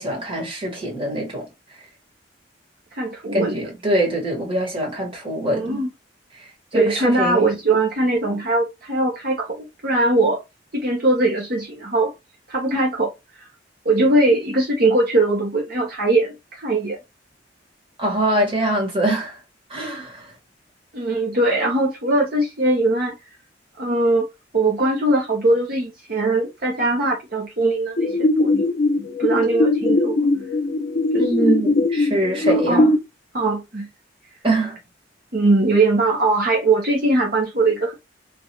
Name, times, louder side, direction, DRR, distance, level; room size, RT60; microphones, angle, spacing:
voice 1, 0.0-1.5 3.3-5.8 6.4-7.5 18.0-19.4 19.7-20.3 31.2-32.9 34.4-34.8, right 1 dB, 30° right, 1.6 m, -23 dB
voice 2, 2.9-3.6 5.5-5.9 6.7-10.4 10.7-12.1 12.5-13.1 13.4-13.5 13.8-17.0 20.9-23.2 23.8-24.3 24.5-28.5 29.2-30.2 31.1-31.6 32.4-32.9 33.3-33.9 35.3-38.0, right 2 dB, 55° right, 1.0 m, -20 dB
sound 1, 28.0-33.0, left 2 dB, 60° left, 0.6 m, -20 dB
3.8 x 2.5 x 3.0 m
head